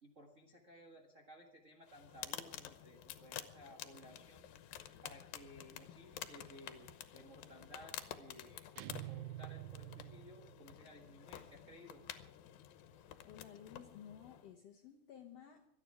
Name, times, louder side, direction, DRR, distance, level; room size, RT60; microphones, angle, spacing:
voice 1, 0.0-8.7 9.1-12.0, equal, 50° right, 2 dB, 0.9 m, -58 dB
sound 1, 1.9-14.5, left 11 dB, 85° left, 2.7 m, -51 dB
sound 2, 8.8-10.8, right 16 dB, 75° right, 1.9 m, -48 dB
voice 2, 12.9-15.7, left 9 dB, 65° left, 4 dB, 1.6 m, -55 dB
25.5 x 9.8 x 4.8 m, 0.73 s
omnidirectional pair, 4.1 m